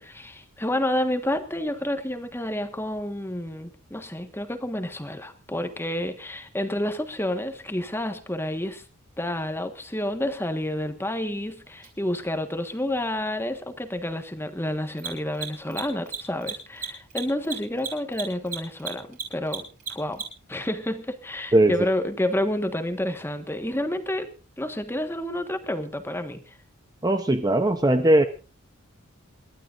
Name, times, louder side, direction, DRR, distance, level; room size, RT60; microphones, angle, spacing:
voice 1, 0.0-8.8 9.2-19.6 19.9-20.2 20.5-24.3 24.6-26.6, left 1 dB, 10° left, 7 dB, 1.5 m, -29 dB
Mechanisms, 11.8-11.9 14.9-20.5, right 6 dB, 40° right, 5.4 m, -34 dB
voice 2, 21.5-21.9 27.0-28.3, right 1 dB, 20° right, 8 dB, 0.8 m, -19 dB
28.0 x 12.5 x 2.6 m, 0.32 s
head